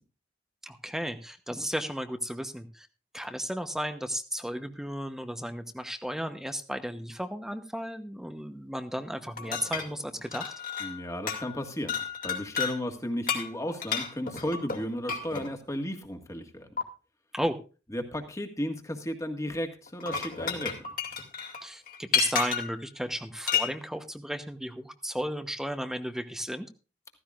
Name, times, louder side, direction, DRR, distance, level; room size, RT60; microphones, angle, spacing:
voice 1, 0.6-2.9 3.1-10.5 17.3-17.6 21.6-26.7, equal, 5° right, 8 dB, 0.9 m, -34 dB
sound 1, 9.4-11.0 11.3-11.6 11.9-12.8 13.3-15.5 16.8-16.9 19.9-22.8 23.5-23.7, left 7 dB, 55° left, 2.5 m, -31 dB
voice 2, 10.8-12.0 12.2-16.7 17.9-20.8, equal, 20° left, 4 dB, 1.7 m, -34 dB
15.0 x 14.5 x 2.5 m, 0.33 s
head